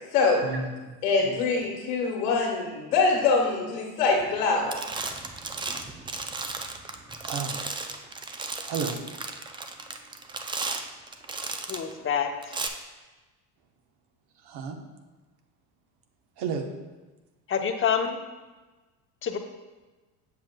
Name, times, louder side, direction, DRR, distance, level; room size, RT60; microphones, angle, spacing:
voice 1, 0.4-0.9 1.2-1.4 7.2-7.6 8.7-9.0 14.4-14.8 16.4-16.7, right 5 dB, 55° right, 4 dB, 1.1 m, -32 dB
voice 2, 1.0-4.8, left 4 dB, 85° left, -1 dB, 1.5 m, -24 dB
sound 1, 4.2-4.4 4.7-11.9 12.4-12.7, right 3 dB, 10° right, 0.3 m, -35 dB
voice 3, 11.7-12.3 17.5-18.2 19.2-19.4, left 7 dB, 25° left, 5 dB, 0.8 m, -26 dB
7.6 x 7.2 x 2.3 m, 1.2 s
supercardioid pair, 85°, 46 cm